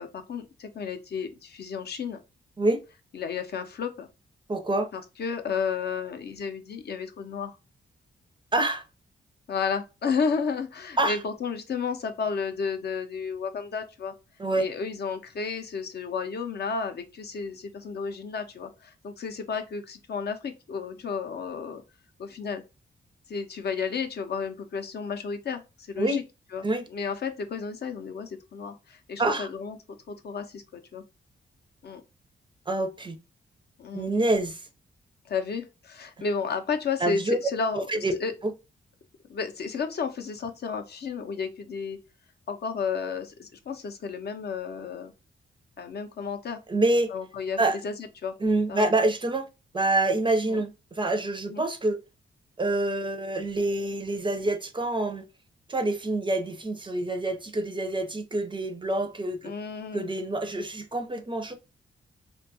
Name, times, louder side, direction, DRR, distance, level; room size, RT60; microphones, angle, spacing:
voice 1, 0.0-2.2 3.1-4.1 4.9-7.6 9.5-14.1 14.6-21.8 22.2-22.6 23.3-25.6 25.9-26.2 26.5-26.6 26.9-29.8 30.1-31.0 31.8-32.0 33.8-34.1 35.3-38.3 39.3-42.0 42.5-45.1 45.8-46.6 47.1-47.6 47.8-47.9 48.2-48.3 48.7-48.9 50.5-50.6 51.5-51.6 59.4-60.1, left 5 dB, 60° left, 0.5 m, -32 dB
voice 2, 4.5-4.9 8.5-8.8 11.0-11.2 14.4-14.7 26.0-26.2 26.6-26.9 29.2-29.5 32.7-33.2 33.9-34.7 37.0-37.4 37.9-38.2 38.4-38.5 46.7-47.1 47.6-47.8 48.4-49.5 49.7-52.0 52.6-55.2 55.7-59.5 59.9-61.5, right 2 dB, 25° right, 0.4 m, -26 dB
2.6 x 2.2 x 2.6 m
cardioid pair, 85°, 20 cm